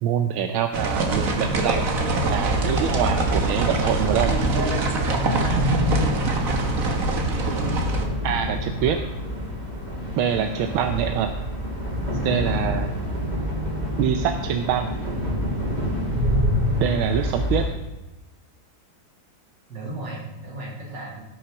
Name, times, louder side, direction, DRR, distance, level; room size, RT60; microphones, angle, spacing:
voice 1, 0.0-1.9 2.3-4.4 8.2-9.0 10.2-11.3 12.2-12.9 14.0-14.9 16.8-17.7, right 9 dB, 85° right, 7 dB, 1.5 m, -25 dB
sound 1, 0.7-8.0, right 2 dB, 45° right, 1.7 m, -24 dB
sound 2, 2.1-17.7, equal, 20° right, 2.8 m, -27 dB
voice 2, 5.2-6.5 19.7-21.2, right 1 dB, 60° right, -2 dB, 3.6 m, -36 dB
17.5 x 6.3 x 5.8 m, 1.0 s
omnidirectional pair, 2.2 m